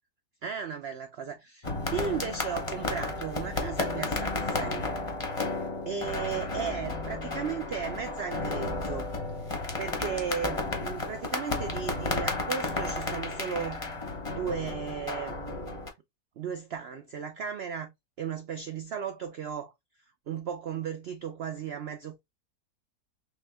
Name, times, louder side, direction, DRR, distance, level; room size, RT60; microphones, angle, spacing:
voice 1, 0.4-4.9 5.3-9.1 9.4-13.8 14.3-15.9 16.4-17.9 18.2-19.7 20.3-22.2, right 7 dB, 70° right, 0.5 m, -36 dB
sound 1, 1.6-15.9, left 3 dB, 30° left, 0.7 m, -33 dB
3.4 x 3.2 x 3.3 m
omnidirectional pair, 1.6 m